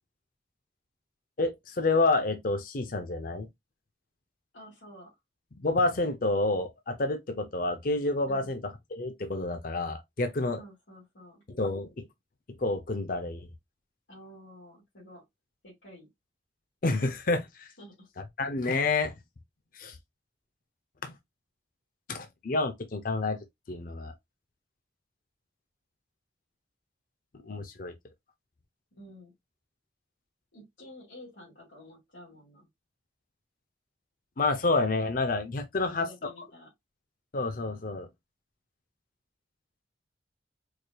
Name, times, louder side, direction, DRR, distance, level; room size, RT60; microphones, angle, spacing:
voice 1, 1.4-3.5 5.6-8.6 8.9-10.6 11.6-12.1 12.6-13.5 16.8-17.7 18.4-19.1 19.7-20.0 21.0-21.1 22.1-23.4 23.7-24.1 27.5-27.9 34.4-36.3 37.3-38.1, left 3 dB, 50° left, 0.6 m, -29 dB
voice 2, 4.5-5.1 8.3-8.5 10.6-11.4 14.1-15.2 15.6-16.1 17.8-18.1 28.9-29.3 30.5-32.7 35.8-36.7, equal, 80° left, 2.3 m, -50 dB
4.7 x 2.7 x 2.2 m
head